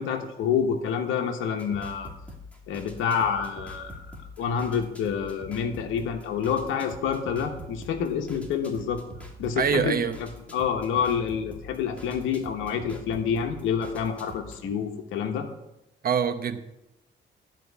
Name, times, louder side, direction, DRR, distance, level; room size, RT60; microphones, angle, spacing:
voice 1, 0.0-2.1 2.7-9.0 9.4-15.5, left 7 dB, 90° left, 4 dB, 1.1 m, -28 dB
sound 1, 1.6-14.7, left 1 dB, 5° left, 2.1 m, -45 dB
voice 2, 9.6-10.2 16.0-16.6, right 7 dB, 50° right, 9 dB, 1.0 m, -24 dB
12.0 x 4.5 x 8.3 m, 0.91 s
cardioid pair, 90°, 20 cm